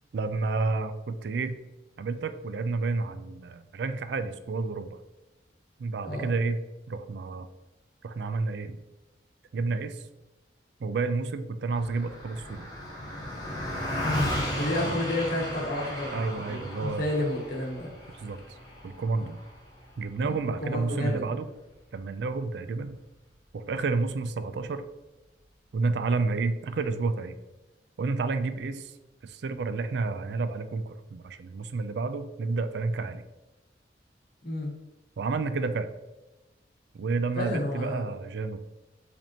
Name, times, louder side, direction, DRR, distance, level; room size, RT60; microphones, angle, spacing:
voice 1, 0.1-1.6 2.0-5.0 5.8-6.6 6.9-7.5 8.0-8.8 9.5-10.0 10.8-12.7 14.8-15.0 16.1-17.1 18.1-18.4 18.8-19.4 20.0-21.4 21.9-23.0 23.5-24.8 25.7-27.4 28.0-28.9 29.2-33.2 35.2-35.9 36.9-38.6, right 3 dB, 65° right, 11 dB, 0.4 m, -30 dB
Car passing by, 11.7-21.3, equal, 20° left, 1.1 m, -35 dB
voice 2, 14.6-18.3 19.2-19.3 20.2-21.4 34.4-34.7 37.3-38.1, left 1 dB, 55° left, 0 dB, 1.0 m, -31 dB
5.0 x 3.4 x 2.9 m, 1.1 s
head